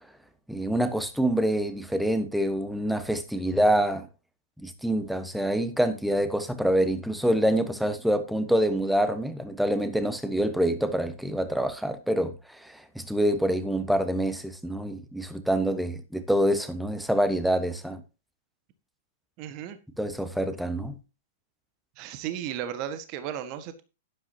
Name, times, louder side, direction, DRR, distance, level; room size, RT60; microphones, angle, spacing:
voice 1, 0.5-4.1 4.6-18.0 20.0-21.0, right 1 dB, ahead, 1.3 m, -26 dB
voice 2, 19.4-19.8 21.9-23.8, right 10 dB, 40° right, 1.6 m, -35 dB
11.5 x 11.5 x 2.9 m
figure-of-eight pair, 105°, 0 cm